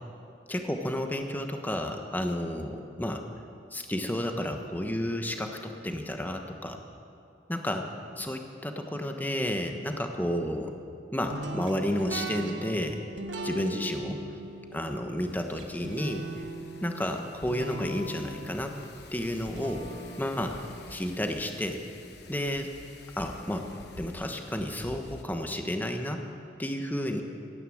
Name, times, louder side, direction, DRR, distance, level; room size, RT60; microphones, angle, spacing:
voice 1, 0.5-3.2 3.7-6.8 7.5-7.9 8.2-10.7 11.1-13.0 13.4-14.2 14.7-16.2 16.8-18.7 19.1-19.8 20.2-20.6 20.9-21.8 22.3-22.7 23.2-23.7 24.0-26.2 26.6-27.2, left 1 dB, 10° left, 4 dB, 1.2 m, -31 dB
sound 1, 11.3-22.3, right 2 dB, 85° right, 1.6 m, -40 dB
Wind, 15.2-25.2, left 2 dB, 65° left, 1.1 m, -50 dB
16.0 x 11.0 x 7.9 m, 2.5 s
head